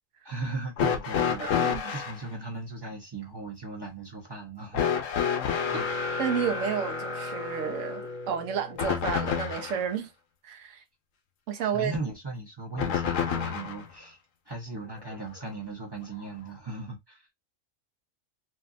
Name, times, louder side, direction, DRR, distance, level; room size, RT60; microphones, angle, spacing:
voice 1, 0.2-4.9 5.7-5.9 11.6-14.2 14.5-17.3, right 3 dB, 20° right, 0.8 m, -37 dB
sound 1, 0.8-2.2 4.7-9.8 12.8-13.8 15.1-15.2 16.2-16.3, left 7 dB, 75° left, 1.0 m, -29 dB
voice 2, 1.4-1.9 6.2-10.1 10.4-10.8 11.5-11.9, right 7 dB, 75° right, 1.0 m, -31 dB
2.8 x 2.6 x 2.4 m
omnidirectional pair, 1.3 m